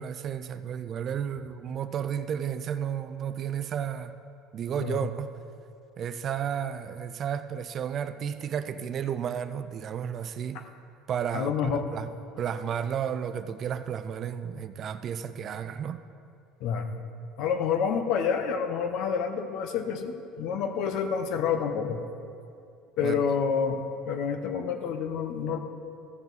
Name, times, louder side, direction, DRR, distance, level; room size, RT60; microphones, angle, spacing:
voice 1, 0.0-4.1 4.5-5.3 6.0-10.6 11.1-12.1 12.4-16.0 23.0-23.1, right 8 dB, 40° right, 11 dB, 0.4 m, -32 dB
voice 2, 11.3-11.9 16.6-17.0 17.4-22.1 23.0-25.6, left 6 dB, 60° left, 7 dB, 0.9 m, -28 dB
14.5 x 6.9 x 4.0 m, 2.5 s
cardioid pair, 135°, 0 cm